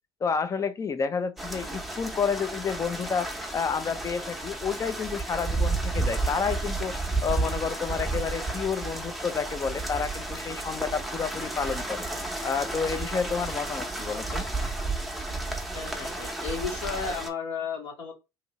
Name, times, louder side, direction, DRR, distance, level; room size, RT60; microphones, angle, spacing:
voice 1, 0.2-6.9 7.2-12.1 12.4-14.4, left 6 dB, 30° left, 0.5 m, -30 dB
sound 1, 1.4-17.3, right 2 dB, ahead, 0.8 m, -32 dB
voice 2, 15.7-18.2, left 6 dB, 60° left, 1.3 m, -33 dB
2.8 x 2.6 x 3.0 m
hypercardioid pair, 65°, 12 cm